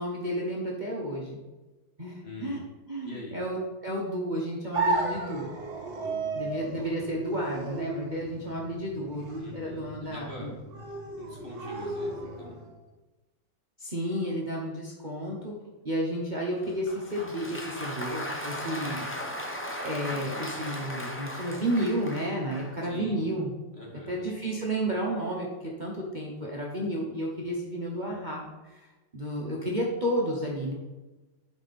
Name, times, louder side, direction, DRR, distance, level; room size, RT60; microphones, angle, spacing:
voice 1, 0.0-1.4 2.0-2.6 2.9-5.5 6.3-10.5 13.8-15.6 15.8-19.0 19.8-23.5 24.1-30.7, equal, 30° right, -3 dB, 1.0 m, -32 dB
voice 2, 2.2-2.6 3.0-3.4 5.9-6.6 9.4-10.6 11.2-12.6 22.8-23.2 23.7-24.3, left 1 dB, 35° left, -2 dB, 1.7 m, -44 dB
sound 1, 4.7-12.7, right 3 dB, 60° right, 2.1 m, -34 dB
Applause, 16.6-22.8, left 1 dB, 15° left, 0.4 m, -37 dB
11.0 x 4.9 x 4.2 m, 1.1 s
omnidirectional pair, 1.9 m